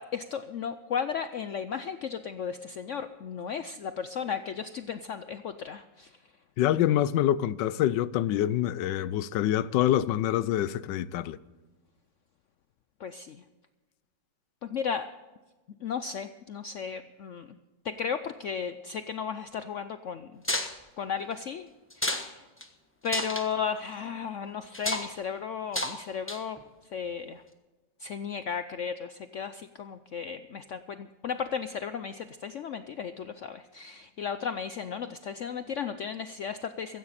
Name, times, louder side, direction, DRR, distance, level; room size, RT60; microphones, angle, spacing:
voice 1, 0.0-6.1 13.0-13.4 14.6-15.1 15.8-17.6 17.8-20.4 21.0-21.7 22.0-22.4 23.0-26.6 26.9-27.4 28.0-37.0, left 6 dB, 70° left, 0.7 m, -35 dB
voice 2, 6.6-11.4, left 12 dB, 85° left, 1.3 m, -26 dB
sound 1, 20.4-20.7 21.9-22.3 22.6-22.7 23.1-23.5 24.7-25.1 25.7-26.0 26.3-26.6, left 1 dB, 10° left, 0.9 m, -30 dB
16.0 x 15.0 x 4.2 m
omnidirectional pair, 1.9 m